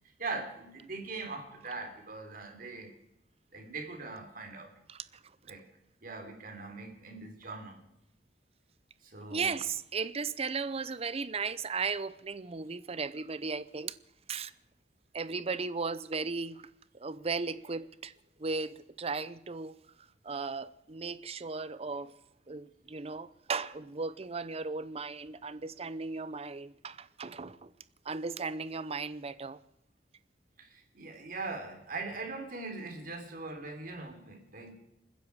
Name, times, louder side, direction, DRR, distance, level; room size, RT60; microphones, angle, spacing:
voice 1, 0.2-2.9 3.5-4.7 5.4-5.7 6.0-7.8 9.0-9.6 30.6-34.7, right 3 dB, 55° right, 3.5 m, -41 dB
voice 2, 4.9-5.2 9.3-14.0 14.3-14.5 15.1-18.1 18.4-22.1 22.5-27.7 28.0-29.6, right 4 dB, 35° right, 0.7 m, -36 dB
28.0 x 10.0 x 4.8 m
head